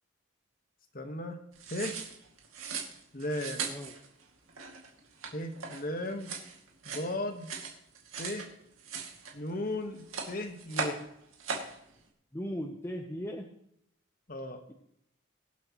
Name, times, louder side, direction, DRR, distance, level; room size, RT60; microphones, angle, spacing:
voice 1, 0.9-1.4 1.7-2.0 3.1-3.6 5.3-6.3 6.8-7.5 8.2-8.5 9.3-11.0 14.3-14.6, left 1 dB, 45° left, 5 dB, 1.4 m, -36 dB
sound 1, 1.5-8.5 8.8-9.7 10.0-11.1 11.3-11.8, right 5 dB, 85° right, 2.3 m, -39 dB
voice 2, 3.6-3.9 12.3-13.5, equal, 10° left, 2 dB, 0.8 m, -37 dB
23.0 x 7.9 x 3.1 m, 0.74 s
head